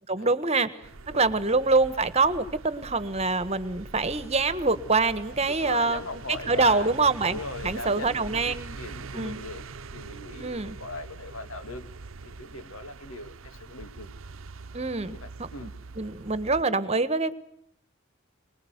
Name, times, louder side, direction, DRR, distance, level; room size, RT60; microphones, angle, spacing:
voice 1, 0.1-0.8 1.1-6.0 6.3-8.8 9.1-9.4 10.4-10.8 14.7-15.7 15.9-17.3, right 3 dB, 30° right, 13 dB, 1.5 m, -25 dB
sound 1, 0.8-16.6, right 3 dB, 75° right, 0.9 m, -43 dB
voice 2, 5.3-6.9 7.2-9.6 9.9-11.9 12.2-14.1 14.9-15.7, left 2 dB, 85° left, 8 dB, 2.8 m, -39 dB
25.0 x 21.5 x 8.2 m, 0.70 s
head